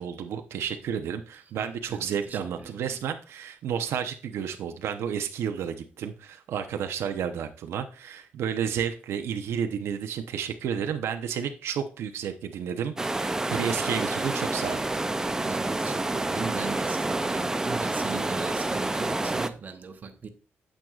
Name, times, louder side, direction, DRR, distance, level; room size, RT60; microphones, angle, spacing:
voice 1, 0.0-14.9, right 8 dB, 90° right, 0.7 m, -31 dB
voice 2, 1.5-2.9 15.2-20.3, right 5 dB, 40° right, 0.9 m, -39 dB
sound 1, 13.0-19.5, right 2 dB, 15° right, 0.4 m, -28 dB
9.0 x 7.5 x 2.4 m
cardioid pair, 120°, 4 cm